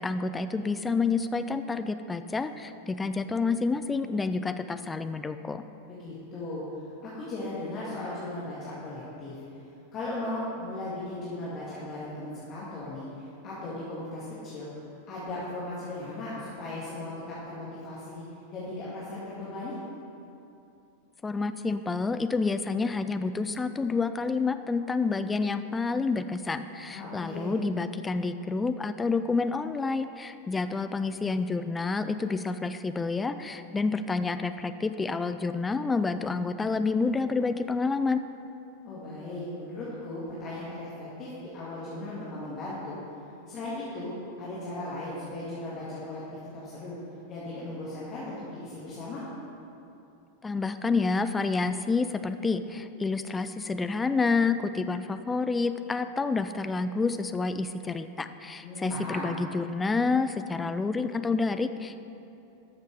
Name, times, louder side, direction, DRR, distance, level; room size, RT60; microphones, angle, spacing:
voice 1, 0.0-5.6 21.2-38.2 50.4-62.0, left 4 dB, 15° left, 10 dB, 0.4 m, -29 dB
voice 2, 5.9-6.6 7.0-9.6 9.9-14.7 15.1-18.2 18.5-19.8 26.9-27.5 38.8-43.0 43.5-44.1 44.4-46.2 46.5-47.0 47.3-49.2 58.6-59.3, left 2 dB, 30° left, -8 dB, 2.0 m, -37 dB
12.0 x 6.6 x 4.7 m, 2.8 s
figure-of-eight pair, 90°, 0 cm